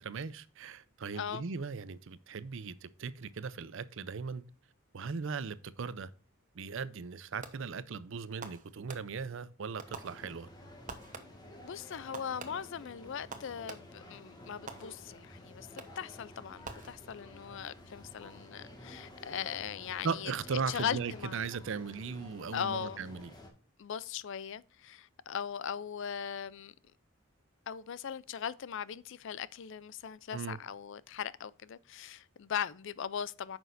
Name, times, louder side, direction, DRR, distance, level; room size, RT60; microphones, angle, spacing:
voice 1, 0.0-4.4 4.9-6.1 6.6-10.5 20.0-23.3 30.3-30.6, right 5 dB, 60° right, 0.5 m, -38 dB
voice 2, 1.1-1.4 11.6-21.4 22.5-23.1 23.8-26.7 27.7-33.6, left 8 dB, 55° left, 0.4 m, -39 dB
Fireworks, 7.4-7.9 8.4-9.4 9.8-10.6 10.9-11.6 12.1-14.1 14.7-15.3 15.8-16.2 16.6-17.4, right 4 dB, 35° right, 0.9 m, -48 dB
sound 1, 9.8-23.5, left 1 dB, 20° left, 1.6 m, -52 dB
9.2 x 6.1 x 2.5 m
head